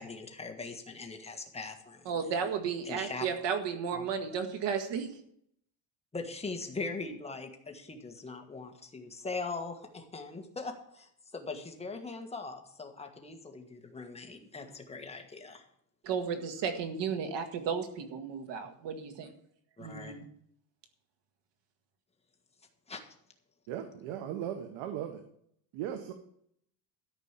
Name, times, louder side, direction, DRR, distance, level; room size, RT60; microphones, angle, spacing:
voice 1, 0.0-2.0 2.8-3.3 3.9-4.1 6.1-15.6 19.8-20.1 22.9-23.0, left 3 dB, 15° left, 4 dB, 1.6 m, -41 dB
voice 2, 2.1-5.1 16.0-19.3 19.8-20.3, right 6 dB, 60° right, 8 dB, 1.9 m, -34 dB
voice 3, 23.7-25.2 25.7-26.1, right 10 dB, 80° right, 6 dB, 1.4 m, -37 dB
13.5 x 5.3 x 9.0 m, 0.69 s
cardioid pair, 145°, 49 cm